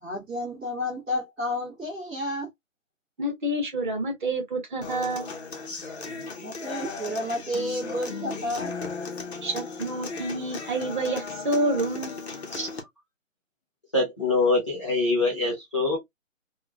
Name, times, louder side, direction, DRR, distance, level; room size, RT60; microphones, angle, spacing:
voice 1, 0.0-2.5 6.4-8.7, left 1 dB, 5° right, 0.8 m, -31 dB
voice 2, 3.2-5.3 9.4-12.1, right 1 dB, 40° right, 1.0 m, -28 dB
Human voice / Acoustic guitar, 4.8-12.8, left 4 dB, 55° left, 0.9 m, -36 dB
voice 3, 13.9-16.0, left 3 dB, 25° left, 0.6 m, -24 dB
3.0 x 2.3 x 2.2 m
hypercardioid pair, 165°, 39 cm